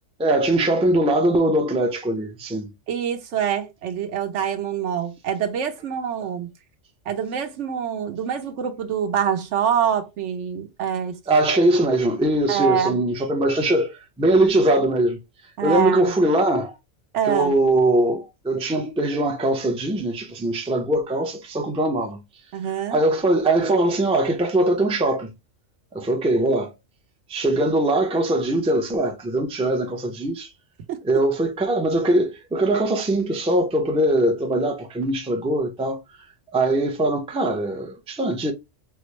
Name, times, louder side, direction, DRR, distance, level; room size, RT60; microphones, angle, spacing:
voice 1, 0.2-2.7 11.3-15.2 15.6-16.8 17.3-22.2 22.9-25.3 25.9-26.7 27.3-30.5 31.0-36.0 36.5-38.5, right 1 dB, 10° right, 0.3 m, -21 dB
voice 2, 2.9-6.5 7.1-11.2 12.5-13.0 15.6-16.1 17.1-17.6 22.5-23.0 30.9-31.0, right 8 dB, 80° right, 1.0 m, -25 dB
4.4 x 2.0 x 3.1 m
omnidirectional pair, 1.2 m